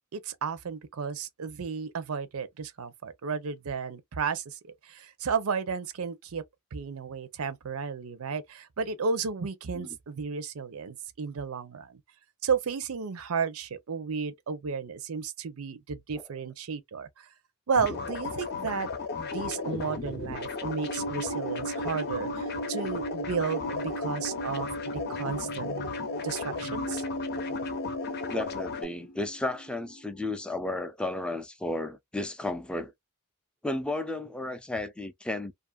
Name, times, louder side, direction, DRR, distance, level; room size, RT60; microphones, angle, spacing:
voice 1, 0.1-6.4 6.7-12.0 12.4-17.3 17.7-18.9 19.2-27.0, right 5 dB, 80° right, 0.6 m, -33 dB
sound 1, 17.8-28.8, left 5 dB, 50° left, 0.6 m, -35 dB
sound 2, 19.3-30.2, right 2 dB, 90° left, 0.6 m, -38 dB
voice 2, 28.3-32.9 33.6-35.5, left 2 dB, 5° left, 0.3 m, -33 dB
2.6 x 2.4 x 2.2 m
head